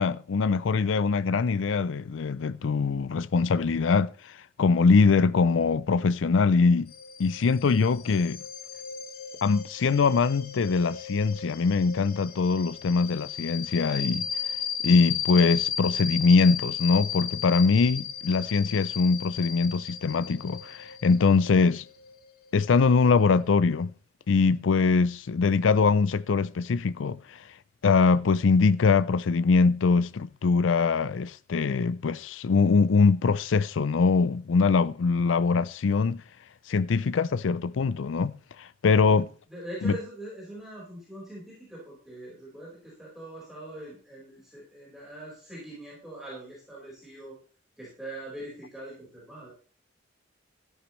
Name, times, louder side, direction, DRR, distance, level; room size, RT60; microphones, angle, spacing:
voice 1, 0.0-6.9 7.2-8.4 9.4-14.3 14.8-21.8 22.5-23.9 24.3-27.4 27.8-36.2 36.7-39.3 39.8-40.0, left 4 dB, 70° left, 0.4 m, -23 dB
sound 1, 6.9-23.2, left 8 dB, 50° left, 1.1 m, -35 dB
voice 2, 39.5-47.4 47.8-49.5, right 1 dB, ahead, 4.7 m, -42 dB
13.5 x 11.0 x 3.2 m
head